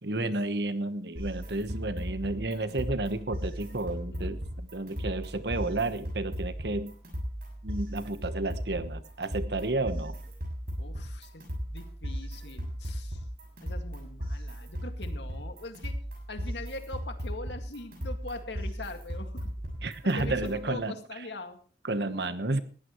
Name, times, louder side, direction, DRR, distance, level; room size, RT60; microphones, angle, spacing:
voice 1, 0.0-6.9 7.6-10.2 19.8-20.9 21.8-22.6, right 2 dB, 70° right, 11 dB, 1.2 m, -31 dB
sound 1, 1.2-20.7, equal, 55° right, 6.5 m, -37 dB
voice 2, 10.8-13.2 13.6-16.0 16.3-19.5 20.2-21.6, left 2 dB, 80° left, 6 dB, 2.1 m, -42 dB
19.5 x 15.0 x 3.1 m, 0.40 s
head